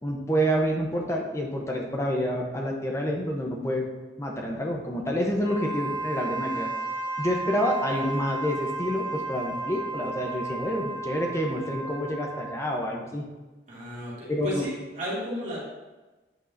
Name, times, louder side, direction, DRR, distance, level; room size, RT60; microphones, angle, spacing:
voice 1, 0.0-3.8 4.2-6.7 7.2-13.2 14.3-14.6, equal, 15° left, 0 dB, 0.8 m, -28 dB
Wind instrument woodwind instrument, 5.4-12.8, right 3 dB, 55° right, 2.1 m, -34 dB
voice 2, 13.7-15.6, left 1 dB, 40° right, -7 dB, 2.3 m, -33 dB
8.8 x 5.4 x 2.7 m, 1.2 s
head